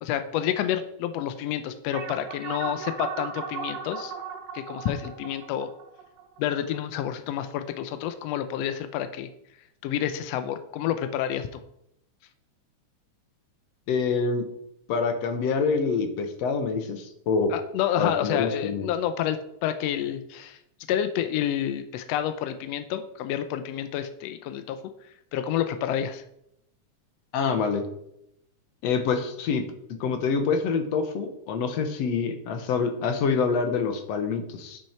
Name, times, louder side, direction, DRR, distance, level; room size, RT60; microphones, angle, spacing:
voice 1, 0.0-4.1 4.5-5.7 6.4-9.3 9.8-11.6 17.5-20.6 20.9-24.8 25.3-26.2, left 10 dB, 85° left, 9 dB, 1.4 m, -29 dB
sound 1, 1.9-6.8, right 6 dB, 65° right, 2.0 m, -36 dB
voice 2, 13.9-14.4 14.9-17.5 18.0-18.9 27.3-27.8 28.8-29.7 30.0-34.8, left 5 dB, 65° left, 7 dB, 2.0 m, -26 dB
10.5 x 6.3 x 4.3 m, 0.78 s
omnidirectional pair, 3.5 m